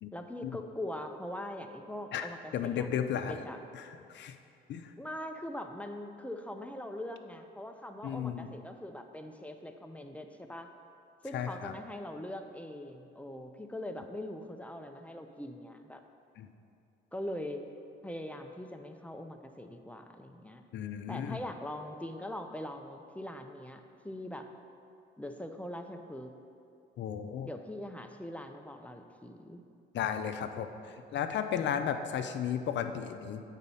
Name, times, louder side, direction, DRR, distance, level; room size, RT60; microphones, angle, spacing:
voice 1, 0.1-3.6 5.0-10.7 11.2-16.0 17.1-17.6 18.0-20.6 21.1-24.5 25.2-26.3 27.4-29.6, left 1 dB, 5° left, 5 dB, 0.5 m, -42 dB
voice 2, 2.1-3.3 3.7-3.8 4.1-4.4 4.7-4.9 8.0-8.5 11.3-11.7 16.4-16.5 20.7-21.4 27.0-27.5 29.9-33.4, left 8 dB, 65° left, 8 dB, 0.5 m, -34 dB
8.2 x 4.1 x 5.5 m, 2.5 s
cardioid pair, 90°, 20 cm